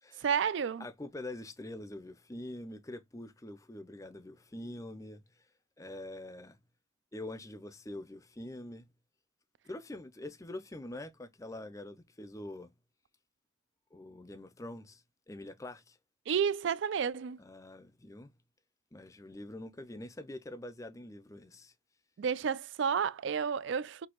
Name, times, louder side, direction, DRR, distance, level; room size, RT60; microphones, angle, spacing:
voice 1, 0.2-0.9 16.3-17.4 22.2-24.1, right 7 dB, 65° right, 0.4 m, -31 dB
voice 2, 0.8-5.2 5.8-6.6 7.1-8.9 9.7-12.7 13.9-16.0 17.4-18.3 18.9-21.7, left 1 dB, 15° left, 0.5 m, -45 dB
6.0 x 2.8 x 2.9 m
head